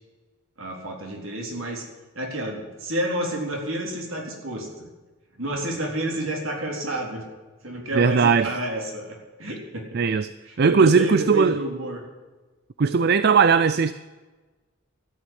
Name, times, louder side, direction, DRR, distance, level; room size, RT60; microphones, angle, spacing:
voice 1, 0.6-1.9 2.1-4.9 5.4-7.3 7.6-9.9 10.5-12.0, right 1 dB, 65° right, 3.9 m, -30 dB
voice 2, 7.9-8.5 9.9-10.3 10.6-11.6 12.8-13.9, right 5 dB, 50° right, 0.4 m, -18 dB
12.5 x 9.1 x 9.6 m
head